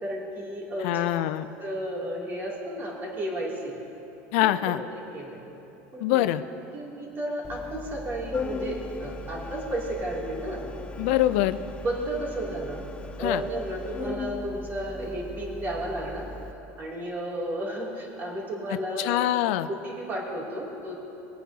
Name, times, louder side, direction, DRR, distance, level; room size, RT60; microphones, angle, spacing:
voice 1, 0.0-1.0 1.6-3.8 4.4-4.5 4.7-5.4 5.9-6.3 6.7-10.7 11.1-11.2 11.8-12.8 13.2-16.2 16.8-19.3 19.7-21.0, right 1 dB, 25° right, -4 dB, 2.8 m, -33 dB
voice 2, 0.8-1.5 4.3-4.8 6.0-6.4 11.0-11.6 13.2-13.4 19.0-19.7, left 14 dB, 70° left, 12 dB, 0.5 m, -24 dB
Organ, 7.4-16.5, left 3 dB, 15° left, 0.5 m, -38 dB
22.0 x 9.2 x 2.8 m, 3.0 s
supercardioid pair, 140°, 7 cm